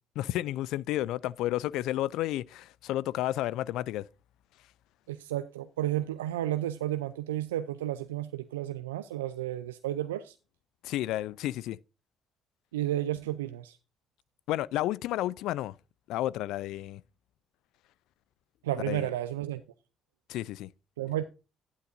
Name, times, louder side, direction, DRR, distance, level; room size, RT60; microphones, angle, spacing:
voice 1, 0.2-4.0 10.8-11.8 14.5-15.8 16.1-17.0 18.9-19.1 20.3-20.7, left 14 dB, 70° left, 0.4 m, -31 dB
voice 2, 5.1-10.4 12.7-13.8 18.6-19.6 21.0-21.2, right 13 dB, 85° right, 0.4 m, -32 dB
11.5 x 9.4 x 2.6 m
hypercardioid pair, 50°, 0 cm